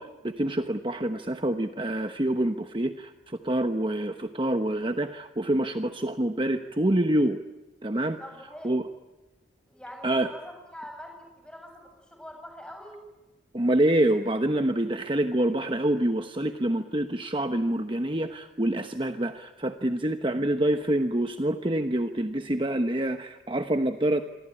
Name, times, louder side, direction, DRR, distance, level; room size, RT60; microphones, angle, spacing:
voice 1, 0.0-7.4 7.8-8.2 8.6-8.8 10.0-10.3 13.5-24.2, right 1 dB, 25° right, 7 dB, 1.0 m, -26 dB
voice 2, 8.2-8.7 9.7-13.0, equal, 5° left, 3 dB, 7.6 m, -44 dB
27.5 x 24.0 x 9.1 m, 1.1 s
head